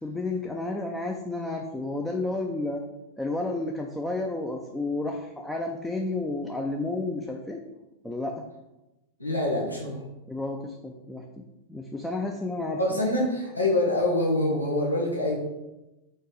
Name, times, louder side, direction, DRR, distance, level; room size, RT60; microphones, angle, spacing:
voice 1, 0.0-2.8 3.2-7.6 8.0-8.4 10.3-11.2 11.7-12.8, left 2 dB, 5° left, 2 dB, 0.6 m, -31 dB
voice 2, 9.2-10.0 12.8-15.4, left 1 dB, 85° left, -3 dB, 1.2 m, -25 dB
4.5 x 4.5 x 4.8 m, 0.99 s
figure-of-eight pair, 90°, 0 cm